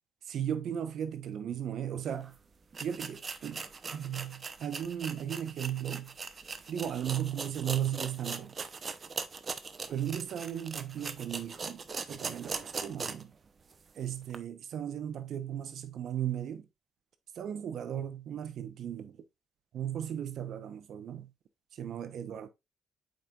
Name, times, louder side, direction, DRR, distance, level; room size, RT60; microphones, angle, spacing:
voice 1, 0.2-2.4 2.8-6.2 6.7-8.5 9.9-13.3 13.9-16.7 17.3-19.2 19.7-21.3 21.7-22.5, right 10 dB, 70° right, 0.9 m, -36 dB
sound 1, 2.2-2.3 2.7-13.3 13.7-13.8 14.3-14.4, right 5 dB, 40° right, 0.8 m, -40 dB
7.5 x 5.3 x 2.4 m
cardioid pair, 90°, 0 cm